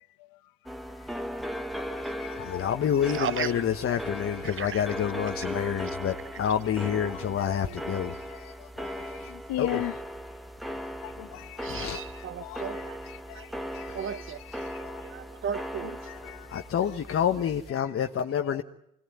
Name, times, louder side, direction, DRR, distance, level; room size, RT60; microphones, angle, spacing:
sound 1, 0.7-17.7, equal, ahead, 1.5 m, -38 dB
voice 1, 1.9-2.6 4.5-4.7 7.1-7.2 9.0-9.9 11.0-12.0 12.4-13.5 13.7-14.3 14.8-15.0 16.0-16.6 17.1-17.2 17.8-17.9 18.3-18.6, left 16 dB, 70° left, 1.1 m, -39 dB
voice 2, 2.4-8.1 8.8-8.9 9.6-9.8 11.7-12.0 16.5-18.6, left 8 dB, 35° left, 1.2 m, -28 dB
voice 3, 3.1-3.6 4.4-4.9 7.0-7.9 11.6-13.0 13.3-13.5 13.9-14.4 15.1-16.0, right 8 dB, 35° right, 0.9 m, -36 dB
25.0 x 19.0 x 9.5 m
cardioid pair, 120°, 37 cm